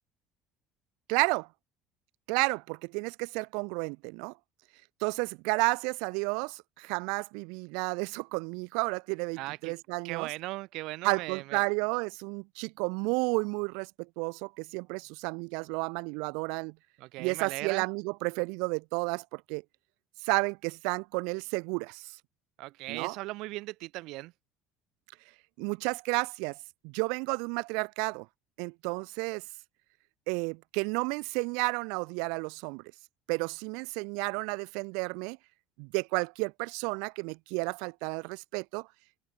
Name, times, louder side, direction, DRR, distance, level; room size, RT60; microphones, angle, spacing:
voice 1, 1.1-1.5 2.3-4.3 5.0-10.3 11.0-16.7 17.2-19.6 20.2-22.1 22.9-23.1 25.6-26.6 26.8-28.3 28.6-29.4 30.3-32.8 33.3-35.4 35.8-38.9, right 34 dB, 80° right, 0.6 m, -32 dB
voice 2, 9.4-9.7 10.0-11.7 17.0-17.9 22.6-24.3, right 20 dB, 60° right, 3.3 m, -38 dB
cardioid pair, 170°, 0 cm